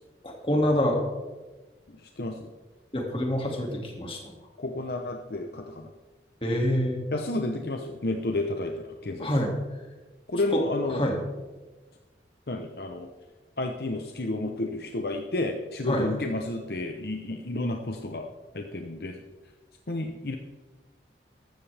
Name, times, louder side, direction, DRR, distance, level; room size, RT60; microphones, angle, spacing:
voice 1, 0.2-1.0 2.9-4.3 6.4-7.0 9.2-9.5 10.5-10.6 10.9-11.2 15.9-16.1, left 1 dB, 30° left, 0 dB, 2.3 m, -26 dB
voice 2, 1.9-2.5 4.6-5.9 7.1-9.3 10.3-11.0 12.5-13.1 13.6-18.2 18.5-19.2 19.9-20.4, left 2 dB, 60° left, 3 dB, 0.8 m, -31 dB
14.5 x 13.0 x 3.5 m, 1.2 s
head